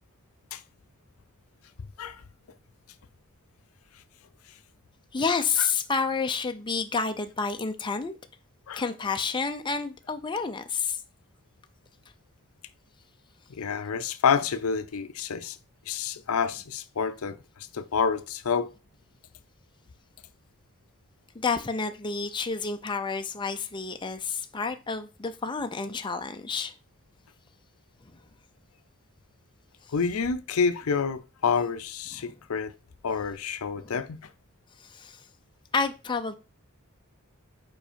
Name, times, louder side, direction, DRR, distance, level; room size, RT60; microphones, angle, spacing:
voice 1, 5.1-8.1 8.7-11.0 21.4-26.7 32.2-32.3 33.8-33.9 34.9-35.2 35.7-36.4, left 5 dB, 20° left, 0.5 m, -29 dB
voice 2, 13.5-15.6 15.9-17.4 17.7-18.7 29.9-32.7 33.0-34.2, left 6 dB, 70° left, 0.6 m, -28 dB
5.0 x 4.7 x 5.1 m
head